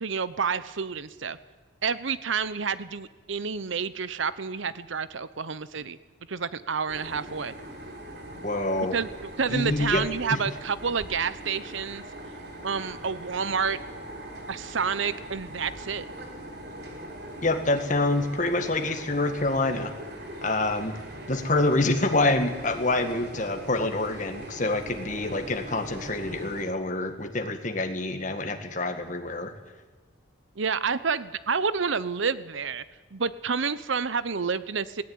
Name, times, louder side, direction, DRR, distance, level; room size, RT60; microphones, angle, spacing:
voice 1, 0.0-1.4 1.8-6.0 6.3-7.5 8.7-9.1 9.4-12.0 12.6-13.8 14.5-16.1 30.6-32.8 33.1-35.0, right 5 dB, 70° right, 15 dB, 0.8 m, -29 dB
sound 1, 6.9-26.6, right 1 dB, 55° right, 3.8 m, -41 dB
voice 2, 8.4-9.0 9.5-10.0 10.3-10.4 17.4-19.9 20.4-20.9 21.3-29.5, left 2 dB, 40° left, 6 dB, 1.9 m, -26 dB
18.5 x 17.5 x 9.6 m, 1.3 s
head